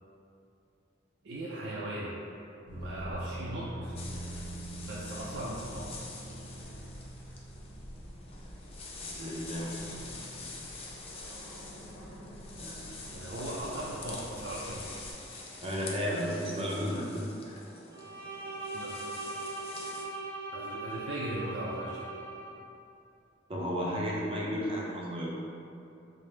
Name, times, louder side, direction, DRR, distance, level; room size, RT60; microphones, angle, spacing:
voice 1, 1.2-2.2 2.7-4.0 4.7-5.9 13.1-14.9 18.7-19.0 20.5-22.1, right 1 dB, 80° right, -6 dB, 0.4 m, -38 dB
sound 1, 2.6-15.1, right 1 dB, 65° left, 1.1 m, -44 dB
sound 2, 4.0-20.0, left 3 dB, 30° left, 0.4 m, -46 dB
voice 2, 9.0-10.1 12.5-12.8 15.6-17.6 23.5-25.3, equal, 30° right, -4 dB, 0.6 m, -34 dB
Bowed string instrument, 17.9-22.6, right 2 dB, 10° left, 1.0 m, -40 dB
4.8 x 2.0 x 3.2 m, 2.7 s
head